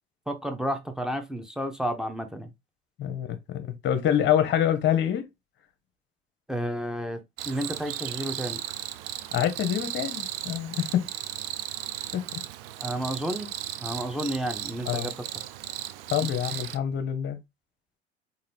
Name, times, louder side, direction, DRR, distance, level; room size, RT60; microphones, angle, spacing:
voice 1, 0.3-2.5 6.5-8.6 12.8-13.5 13.8-15.1, equal, ahead, 0.7 m, -31 dB
voice 2, 3.0-5.3 9.3-11.1 12.1-12.2 14.9-15.1 16.1-17.4, left 10 dB, 35° left, 0.8 m, -26 dB
Cricket, 7.4-16.8, right 13 dB, 60° right, 0.5 m, -36 dB
3.9 x 2.6 x 3.3 m
figure-of-eight pair, 70°, 32 cm